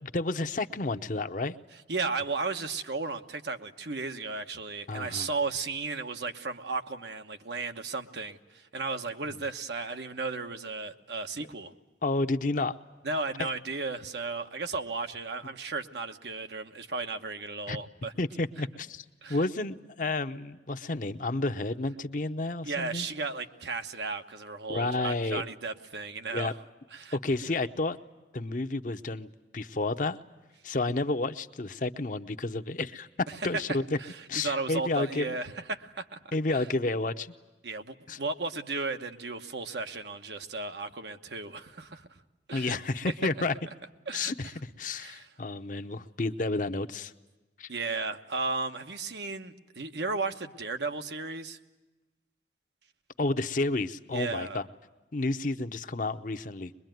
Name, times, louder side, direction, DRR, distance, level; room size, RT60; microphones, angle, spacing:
voice 1, 0.0-1.6 4.9-5.3 9.2-9.4 12.0-12.7 13.4-13.5 17.7-17.8 18.2-23.1 24.7-25.4 26.3-26.5 27.1-28.0 28.3-30.2 30.6-34.0 34.3-35.3 36.3-37.3 38.1-38.2 42.5-43.5 44.1-47.1 47.6-47.7 53.2-54.7 55.1-56.7, left 2 dB, 45° left, 8 dB, 0.8 m, -31 dB
voice 2, 1.9-11.7 13.0-18.1 19.2-19.4 22.6-26.5 26.9-27.2 34.0-36.6 37.6-42.2 42.5-42.8 44.1-44.3 45.0-45.3 47.7-51.6 54.1-54.6, right 3 dB, 75° right, 7 dB, 1.2 m, -35 dB
23.0 x 22.0 x 9.2 m, 1.1 s
head